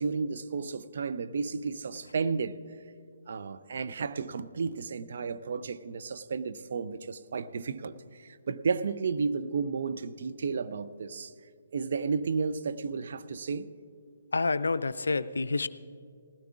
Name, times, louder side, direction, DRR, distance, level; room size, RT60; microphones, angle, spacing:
voice 1, 0.0-2.6 3.3-11.3 11.7-13.7, right 5 dB, 50° right, 0.5 m, -32 dB
voice 2, 14.3-15.7, left 3 dB, 65° left, 0.4 m, -28 dB
19.5 x 16.0 x 2.4 m
figure-of-eight pair, 135°, 0 cm